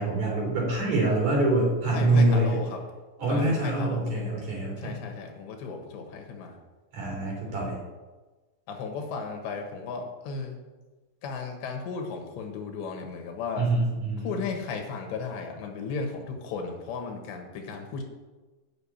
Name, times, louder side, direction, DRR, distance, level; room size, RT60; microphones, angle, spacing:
voice 1, 0.0-2.6 3.2-5.1 6.9-7.8 13.6-14.3, right 2 dB, 45° right, -3 dB, 4.4 m, -25 dB
voice 2, 1.9-2.8 3.3-4.2 4.8-6.6 8.7-10.6 11.2-13.7 14.2-18.0, left 4 dB, 90° left, 3 dB, 3.6 m, -35 dB
9.0 x 6.5 x 8.5 m, 1.2 s
omnidirectional pair, 4.9 m